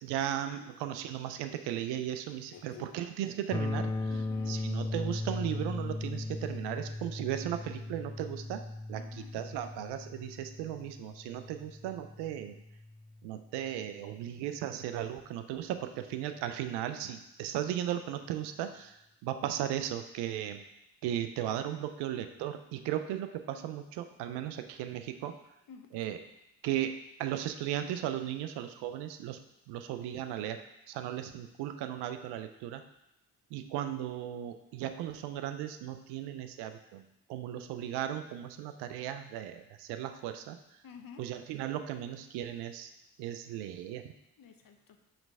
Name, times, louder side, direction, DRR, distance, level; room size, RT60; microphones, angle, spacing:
voice 1, 0.0-4.1 4.5-8.6 8.9-12.6 13.2-20.6 21.0-25.4 25.9-26.2 26.6-29.4 29.7-32.8 33.5-40.6 41.2-42.9 43.2-44.1, right 11 dB, 90° right, 9 dB, 0.5 m, -36 dB
voice 2, 2.5-2.9 4.1-4.6 8.9-9.3 25.7-25.9 40.8-41.3 44.4-45.0, left 7 dB, 55° left, 5 dB, 0.9 m, -51 dB
sound 1, 3.5-13.4, left 2 dB, 10° left, 0.4 m, -38 dB
5.8 x 3.3 x 5.2 m, 0.86 s
supercardioid pair, 45°, 39 cm